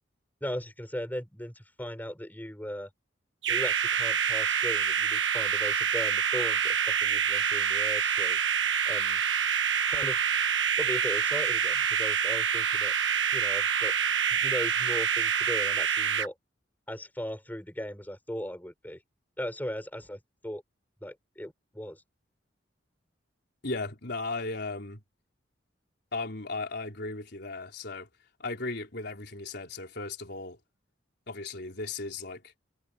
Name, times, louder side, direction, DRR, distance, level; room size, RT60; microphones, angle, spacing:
voice 1, 0.4-2.9 3.5-8.4 8.9-9.2 9.9-10.2 10.8-12.9 13.3-14.0 14.3-16.3 16.9-19.0 19.4-20.6 21.0-22.0, equal, 10° left, 4.8 m, -38 dB
sound 1, 3.4-16.3, right 7 dB, 70° right, 1.5 m, -26 dB
voice 2, 23.6-25.0 26.1-28.1 28.4-30.6 31.3-32.5, left 3 dB, 60° left, 4.5 m, -36 dB
head